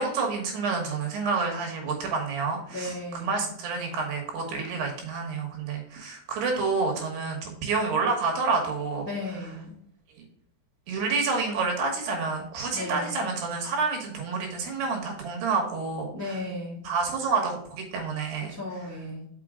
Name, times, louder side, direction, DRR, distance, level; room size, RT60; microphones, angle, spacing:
voice 1, 0.0-9.1 10.9-16.4 16.8-18.5, right 4 dB, 70° right, 1 dB, 3.0 m, -28 dB
voice 2, 2.7-3.4 9.0-9.7 12.7-13.2 16.1-16.9 18.5-19.3, left 1 dB, 55° left, -5 dB, 0.8 m, -35 dB
6.0 x 5.8 x 3.6 m, 0.69 s
omnidirectional pair, 5.5 m